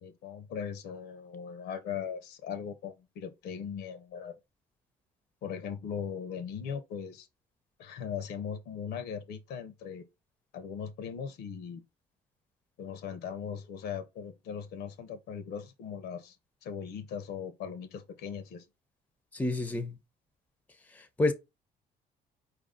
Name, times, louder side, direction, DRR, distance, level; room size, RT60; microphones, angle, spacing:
voice 1, 0.0-4.4 5.4-7.3 7.8-10.1 10.5-11.8 12.8-16.4 16.6-18.6, left 7 dB, 75° left, 0.7 m, -39 dB
voice 2, 19.3-20.0 21.2-21.3, left 2 dB, 10° left, 0.6 m, -28 dB
4.6 x 2.6 x 3.6 m
cardioid pair, 110°, 17 cm